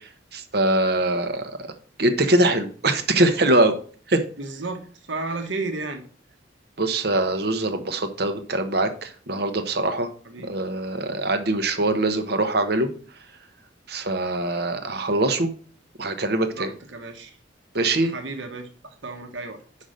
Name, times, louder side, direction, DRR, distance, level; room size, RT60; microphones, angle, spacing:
voice 1, 0.3-1.6 2.0-3.7 4.1-4.2 6.8-10.1 10.4-12.9 13.9-15.5 16.0-16.7 17.7-18.1, right 2 dB, 55° right, 7 dB, 1.0 m, -23 dB
voice 2, 4.4-4.8 5.1-6.0 10.3-10.5 16.5-17.3 18.0-19.6, right 3 dB, 75° right, 4 dB, 1.2 m, -33 dB
5.8 x 5.3 x 6.4 m, 0.44 s
head